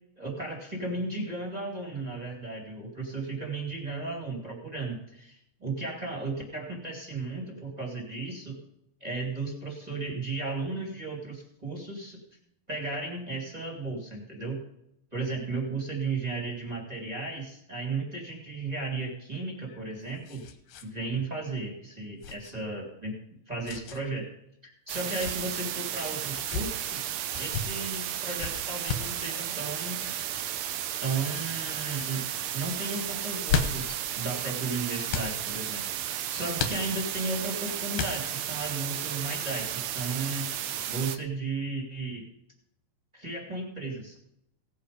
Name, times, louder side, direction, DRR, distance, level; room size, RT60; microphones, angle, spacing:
voice 1, 0.2-8.6 9.0-12.2 12.7-14.6 15.1-20.4 20.8-23.2 23.5-24.3 24.6-30.0 31.0-32.3 32.5-40.5 40.9-42.3 43.1-44.2, right 3 dB, 15° right, -1 dB, 2.0 m, -35 dB
sound 1, 19.5-20.9 21.2-21.3 22.2-22.5 23.6-24.0 24.9-25.4 26.2-26.7 27.3-27.6 28.4-29.1 30.3-30.6 31.3-31.6 31.9-32.1 33.2-34.0 35.1-35.3 36.6-37.2 37.9-38.5, left 6 dB, 70° left, 2.5 m, -33 dB
sound 2, 24.9-41.2, right 11 dB, 80° right, 2.4 m, -34 dB
17.5 x 7.8 x 5.1 m, 0.77 s
omnidirectional pair, 4.4 m